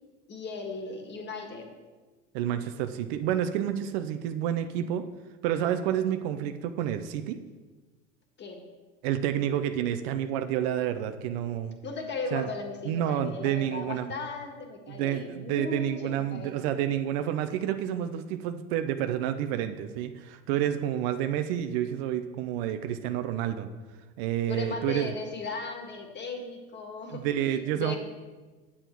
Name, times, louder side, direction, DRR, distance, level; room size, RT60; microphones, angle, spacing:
voice 1, 0.3-1.7 8.4-8.6 11.8-16.6 24.5-28.0, left 4 dB, 35° left, 4 dB, 1.8 m, -37 dB
voice 2, 2.3-5.0 5.4-7.4 9.0-11.8 12.3-12.5 12.8-14.1 14.9-23.7 24.2-25.1 27.1-28.0, right 10 dB, 70° right, 8 dB, 0.7 m, -29 dB
8.6 x 7.0 x 4.5 m, 1.3 s
hypercardioid pair, 90°, 31 cm